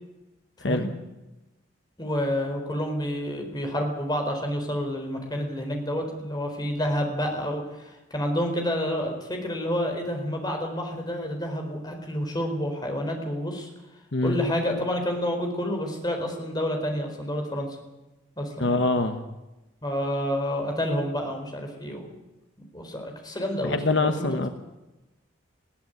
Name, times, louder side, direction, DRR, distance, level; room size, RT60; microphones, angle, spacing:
voice 1, 2.0-13.7 14.2-17.7 18.4-18.8 19.8-22.1 22.7-24.5, equal, 20° left, 3 dB, 4.3 m, -29 dB
voice 2, 18.6-19.2 23.6-24.5, left 2 dB, 70° left, 7 dB, 1.3 m, -24 dB
20.5 x 16.0 x 9.4 m, 1.0 s
head